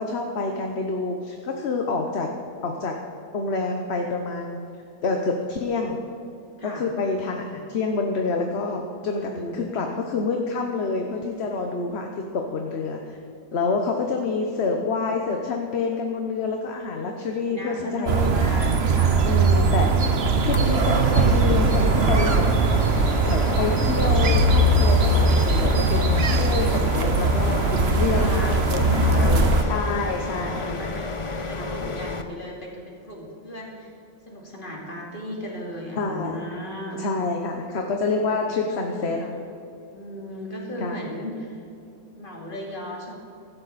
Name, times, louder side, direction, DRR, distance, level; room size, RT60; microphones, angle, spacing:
voice 1, 0.0-2.3 2.6-2.9 3.3-4.6 5.0-6.0 6.6-13.2 13.5-18.3 19.2-19.9 20.4-22.4 23.2-30.8 31.5-32.0 36.0-36.4 37.0-39.2 40.8-41.0, left 4 dB, 65° left, 2 dB, 1.3 m, -27 dB
voice 2, 9.2-9.6 17.4-19.2 27.6-33.9 34.3-37.0 38.1-39.3 39.9-41.6 42.2-43.3, left 1 dB, 45° left, -2 dB, 2.8 m, -36 dB
sound 1, 18.1-29.6, right 3 dB, 65° right, 1.2 m, -20 dB
sound 2, 20.5-32.2, left 3 dB, 30° left, 0.7 m, -32 dB
16.0 x 13.0 x 4.2 m, 2.7 s
omnidirectional pair, 1.2 m